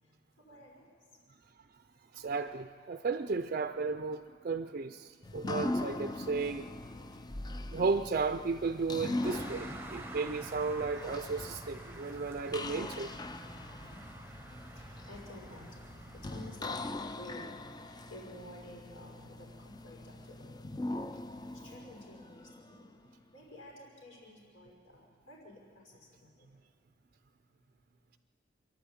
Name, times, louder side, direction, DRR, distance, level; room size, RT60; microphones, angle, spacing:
voice 1, 0.4-0.9 13.7-14.0 14.8-15.8 16.1-21.0 21.6-22.9 23.3-26.3, left 1 dB, 85° left, -2 dB, 5.4 m, -52 dB
voice 2, 2.1-6.7 7.7-13.1, right 4 dB, 45° right, 8 dB, 0.5 m, -34 dB
sound 1, 5.2-23.1, left 2 dB, 20° left, 0.5 m, -41 dB
sound 2, 9.2-16.6, right 2 dB, 10° right, 0.8 m, -48 dB
27.0 x 11.5 x 8.6 m, 2.2 s
head